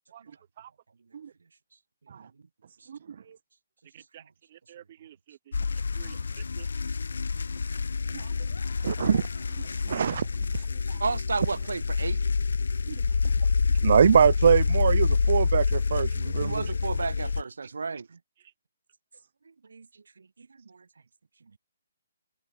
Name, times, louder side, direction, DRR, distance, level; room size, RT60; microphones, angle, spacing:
voice 1, 3.9-4.2 4.5-6.7 10.9-11.2 16.6-17.4, right 11 dB, 35° right, 2.8 m, -52 dB
sound 1, 5.5-17.4, left 4 dB, 80° left, 0.6 m, -27 dB
voice 2, 8.8-9.3 9.9-10.3 10.5-10.9 12.9-13.0 13.8-16.6, right 7 dB, 50° right, 1.0 m, -23 dB
voice 3, 11.0-12.2 16.4-18.2 19.7-19.9 20.2-20.8, right 4 dB, 85° right, 2.8 m, -33 dB
open air
hypercardioid pair, 165°, 0 cm